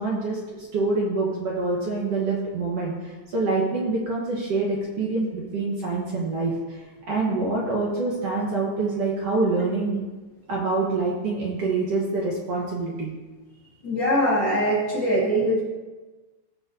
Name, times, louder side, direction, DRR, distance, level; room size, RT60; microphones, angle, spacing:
voice 1, 0.0-6.8 7.1-10.0 10.5-13.1, right 3 dB, 60° right, -3 dB, 1.8 m, -26 dB
voice 2, 13.8-15.6, equal, 60° left, -3 dB, 1.2 m, -22 dB
16.0 x 6.9 x 2.7 m, 1.3 s
omnidirectional pair, 4.1 m